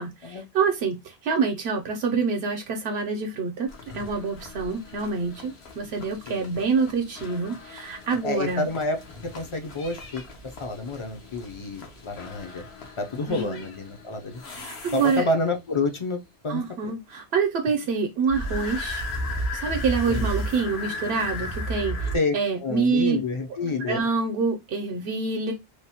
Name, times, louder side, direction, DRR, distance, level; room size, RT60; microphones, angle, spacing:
voice 1, 0.0-8.7 13.3-13.7 14.5-15.3 16.5-19.0 19.5-22.1 22.3-23.2 23.8-25.5, right 5 dB, 80° right, 0.8 m, -26 dB
sound 1, 3.7-15.6 18.3-22.2, equal, 80° left, 1.0 m, -35 dB
voice 2, 6.3-6.6 8.2-12.6 13.0-14.4 14.9-16.9 20.1-20.3 22.1-22.3 22.6-24.0, left 3 dB, 45° left, 0.4 m, -29 dB
3.1 x 2.0 x 2.7 m
omnidirectional pair, 1.1 m